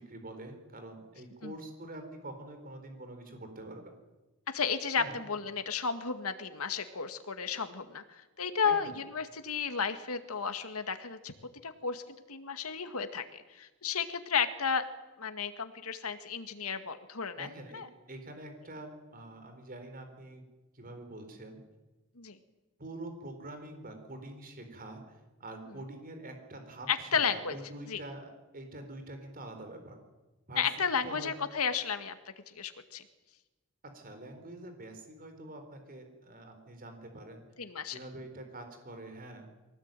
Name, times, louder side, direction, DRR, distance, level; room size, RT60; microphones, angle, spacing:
voice 1, 0.0-3.9 5.0-5.2 8.6-9.0 17.4-20.4 20.7-21.6 22.8-30.0 30.5-30.7 31.0-31.3 33.8-37.4 37.9-39.5, right 1 dB, 40° right, 6 dB, 4.2 m, -46 dB
voice 2, 4.5-11.3 11.6-12.0 12.3-14.8 15.2-17.5 17.7-17.9 22.2-22.4 26.9-27.5 27.9-28.0 30.6-32.1 32.5-33.0 37.6-38.0, left 6 dB, 85° left, 8 dB, 2.1 m, -33 dB
23.5 x 18.0 x 9.2 m, 1.1 s
head